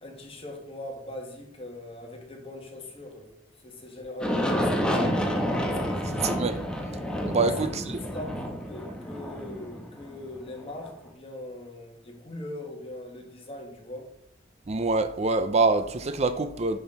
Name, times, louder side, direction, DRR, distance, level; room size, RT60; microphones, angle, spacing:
voice 1, 0.0-3.4 3.6-5.2 5.8-6.4 7.3-14.1, left 1 dB, 30° left, 1 dB, 1.9 m, -40 dB
Aircraft, 4.2-10.9, equal, 5° left, 1.2 m, -29 dB
voice 2, 6.2-6.5 7.3-7.8 14.7-16.8, right 3 dB, 35° right, 10 dB, 0.5 m, -25 dB
10.0 x 6.0 x 4.0 m, 0.74 s
head